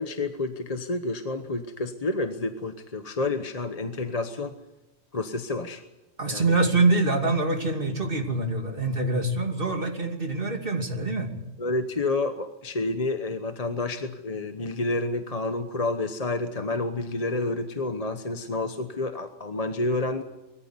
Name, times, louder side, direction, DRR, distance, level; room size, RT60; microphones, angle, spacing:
voice 1, 0.0-4.5 5.1-5.8 6.3-6.6 11.6-20.2, left 2 dB, 35° left, 8 dB, 1.1 m, -29 dB
voice 2, 6.2-11.3, right 2 dB, 50° right, 4 dB, 2.9 m, -25 dB
23.0 x 14.5 x 9.6 m, 1.1 s
omnidirectional pair, 1.2 m